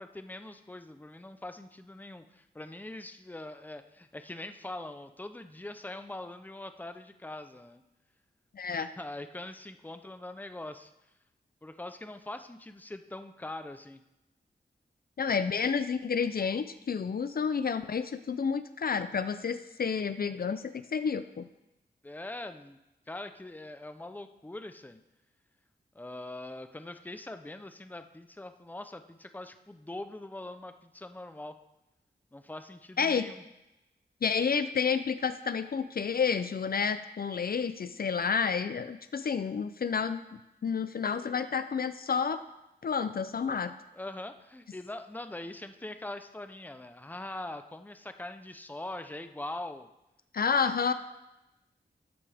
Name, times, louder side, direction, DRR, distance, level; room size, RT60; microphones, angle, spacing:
voice 1, 0.0-7.8 8.8-10.9 11.6-14.0 22.0-22.8 23.1-25.0 25.9-31.6 32.3-33.4 43.9-49.9, left 2 dB, 10° left, 9 dB, 0.6 m, -42 dB
voice 2, 8.5-8.9 15.2-21.5 33.0-33.3 34.2-40.2 40.6-42.4 42.8-43.7 50.3-50.9, left 6 dB, 60° left, 12 dB, 0.5 m, -30 dB
13.0 x 8.5 x 3.5 m, 0.94 s
wide cardioid pair, 85°, 18 cm